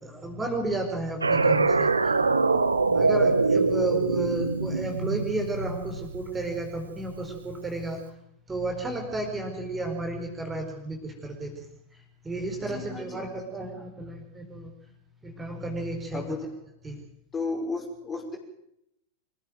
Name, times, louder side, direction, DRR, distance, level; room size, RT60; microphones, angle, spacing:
voice 1, 0.0-2.1 2.9-8.0 8.5-11.7 11.9-14.7 15.2-16.2 16.8-17.0, right 2 dB, 15° right, 3 dB, 4.8 m, -32 dB
sound 1, 1.2-6.5, right 4 dB, 80° right, 1.4 m, -24 dB
voice 2, 12.7-13.2 13.8-13.9 16.1-16.5 17.3-18.4, left 3 dB, 20° left, 2 dB, 5.8 m, -33 dB
25.5 x 15.5 x 7.8 m, 0.77 s
figure-of-eight pair, 90°, 0 cm